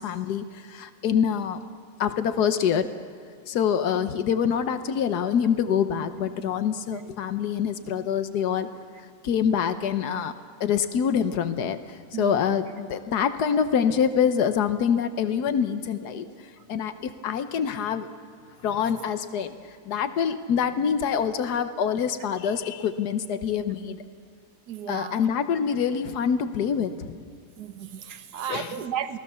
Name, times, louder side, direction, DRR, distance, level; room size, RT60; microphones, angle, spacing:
voice 1, 0.0-1.6 2.0-2.9 3.5-8.7 9.2-10.3 10.6-16.3 16.7-18.1 18.6-19.6 19.8-24.0 24.9-27.2 28.5-28.7, left 7 dB, 90° left, 10 dB, 1.5 m, -25 dB
voice 2, 12.1-12.7 24.7-25.2 27.6-29.2, right 9 dB, 85° right, 10 dB, 1.5 m, -34 dB
28.5 x 18.5 x 6.9 m, 2.1 s
omnidirectional pair, 1.7 m